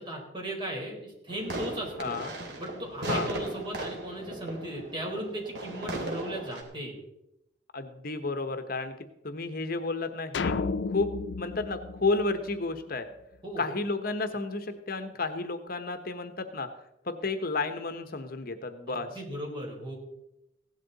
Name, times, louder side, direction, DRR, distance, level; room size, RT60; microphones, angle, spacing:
voice 1, 0.0-2.1 2.6-7.0 13.4-13.6 18.9-20.0, right 1 dB, 25° right, 0 dB, 4.3 m, -37 dB
sound 1, 1.3-6.6, right 1 dB, 65° right, 3.0 m, -36 dB
voice 2, 2.0-2.3 3.1-3.3 7.7-9.0 9.2-10.5 10.9-13.1 13.6-16.7 17.0-19.1, left 3 dB, 55° left, 9 dB, 1.1 m, -32 dB
sound 2, 10.3-12.8, left 4 dB, 75° left, 0.5 m, -32 dB
16.5 x 12.0 x 4.1 m, 0.85 s
head